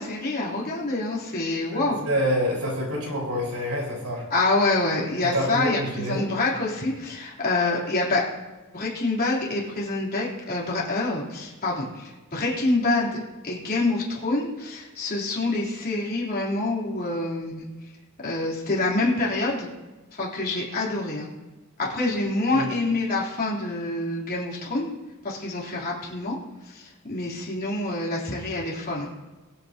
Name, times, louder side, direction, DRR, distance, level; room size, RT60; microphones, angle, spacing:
voice 1, 0.0-2.1 4.3-8.3 8.7-17.7 18.2-19.7 20.2-21.3 21.8-25.0 25.2-26.4 26.7-29.1, left 2 dB, 40° left, -5 dB, 3.5 m, -26 dB
voice 2, 1.7-4.3 5.2-6.3 22.5-22.7, equal, 80° right, -3 dB, 4.8 m, -27 dB
22.5 x 8.4 x 2.9 m, 1.2 s
head